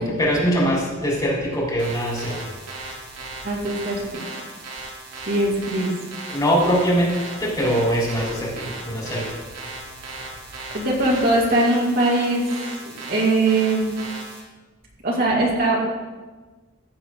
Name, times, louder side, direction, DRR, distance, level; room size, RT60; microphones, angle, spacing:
voice 1, 0.0-2.5 6.3-9.3, equal, 20° left, -5 dB, 3.6 m, -22 dB
sound 1, 1.8-14.4, right 2 dB, 80° right, 3.1 m, -37 dB
voice 2, 3.4-4.0 5.3-5.9 10.7-12.6 13.1-14.0 15.0-15.8, right 2 dB, 50° right, -3 dB, 2.3 m, -21 dB
15.0 x 7.8 x 3.9 m, 1.3 s
head